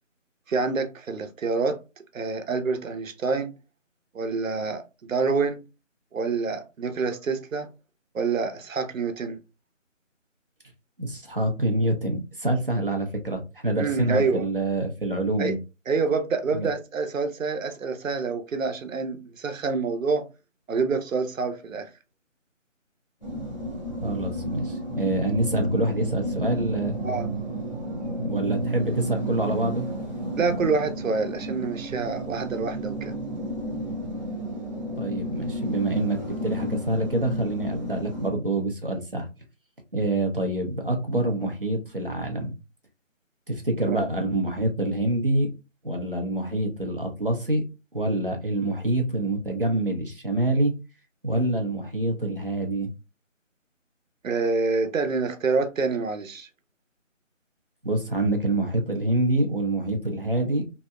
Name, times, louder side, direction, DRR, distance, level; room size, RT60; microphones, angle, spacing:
voice 1, 0.5-1.8 2.1-3.5 4.1-4.8 5.1-5.6 6.1-7.7 8.1-9.4 13.8-14.5 15.4-15.5 15.9-20.3 20.7-21.9 27.0-27.3 30.4-33.2 43.8-44.1 54.2-56.5, right 4 dB, 85° right, 0.7 m, -27 dB
voice 2, 11.0-15.6 16.5-16.7 24.0-27.0 28.2-29.9 35.0-39.3 39.9-42.5 43.5-45.5 45.8-47.6 47.9-50.7 51.2-52.9 57.8-60.6, right 1 dB, 45° right, 0.5 m, -26 dB
sound 1, 23.2-38.3, equal, 35° left, 0.6 m, -32 dB
2.7 x 2.0 x 2.2 m
figure-of-eight pair, 180°, 39 cm